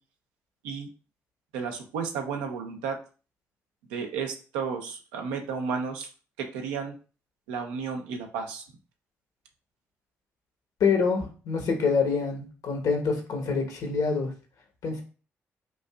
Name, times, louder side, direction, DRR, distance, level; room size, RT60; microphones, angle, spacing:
voice 1, 1.5-3.0 3.9-6.1 6.4-7.0 7.5-8.6, right 6 dB, 85° right, 3 dB, 0.7 m, -32 dB
voice 2, 10.8-14.3 14.8-15.0, left 5 dB, 70° left, 3 dB, 1.2 m, -26 dB
5.0 x 2.6 x 2.4 m, 0.36 s
hypercardioid pair, 45°, 6 cm